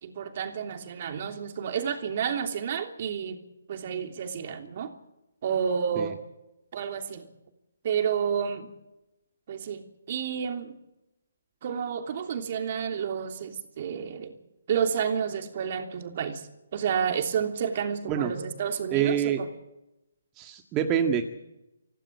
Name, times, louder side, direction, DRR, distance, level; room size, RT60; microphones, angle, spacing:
voice 1, 0.0-3.4 3.7-4.9 5.4-6.2 6.7-7.3 7.8-8.7 9.5-9.8 10.1-10.7 11.6-14.3 14.7-16.4 16.7-19.4, right 7 dB, 45° right, 6 dB, 3.2 m, -30 dB
voice 2, 18.9-19.4 20.4-21.3, right 9 dB, 20° right, 4 dB, 1.8 m, -26 dB
26.0 x 17.0 x 8.6 m, 0.94 s
figure-of-eight pair, 145°, 0 cm